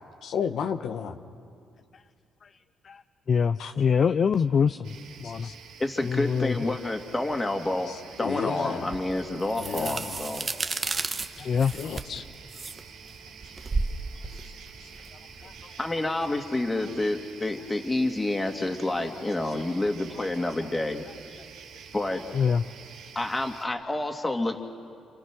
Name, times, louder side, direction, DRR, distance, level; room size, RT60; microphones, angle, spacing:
voice 1, 0.2-1.2 3.6-3.7 5.4-5.5 8.2-8.9 9.6-10.2 11.7-12.2, left 7 dB, 70° left, 7 dB, 1.2 m, -32 dB
voice 2, 3.3-4.9 5.2-5.5 6.0-6.7 10.9-11.0 11.4-11.7 15.4-15.5 22.3-22.6, left 6 dB, 50° left, 11 dB, 0.5 m, -24 dB
sound 1, 4.8-23.7, right 6 dB, 90° right, 2.9 m, -48 dB
voice 3, 5.8-7.9 8.2-10.5 15.8-21.0 21.9-22.2 23.1-24.6, left 2 dB, 20° left, 4 dB, 2.3 m, -28 dB
sound 2, 8.9-15.7, right 3 dB, 30° right, 1.2 m, -33 dB
29.5 x 28.5 x 6.2 m, 2.3 s
cardioid pair, 90°, 0 cm